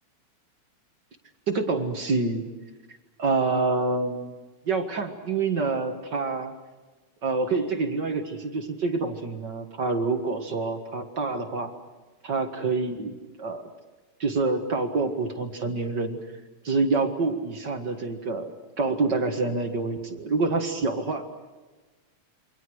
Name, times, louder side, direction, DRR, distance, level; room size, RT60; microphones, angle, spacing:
voice 1, 1.5-2.4 3.2-4.3 4.7-6.5 7.2-11.7 12.2-13.7 14.2-16.2 16.6-21.3, right 3 dB, 40° right, 5 dB, 1.9 m, -27 dB
28.0 x 25.0 x 6.4 m, 1.3 s
omnidirectional pair, 3.4 m